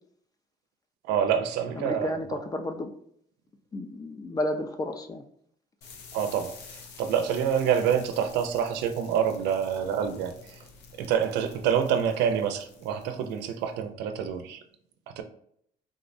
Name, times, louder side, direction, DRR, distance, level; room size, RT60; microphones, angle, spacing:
voice 1, 1.0-2.1 6.1-10.6 11.0-14.6 15.2-15.3, right 8 dB, 90° right, 0.4 m, -27 dB
voice 2, 1.8-2.9 3.7-5.2, left 1 dB, 20° left, 0.4 m, -32 dB
sound 1, 5.8-13.7, left 5 dB, 80° left, 0.6 m, -49 dB
3.6 x 2.0 x 2.5 m
cardioid pair, 110°, 17 cm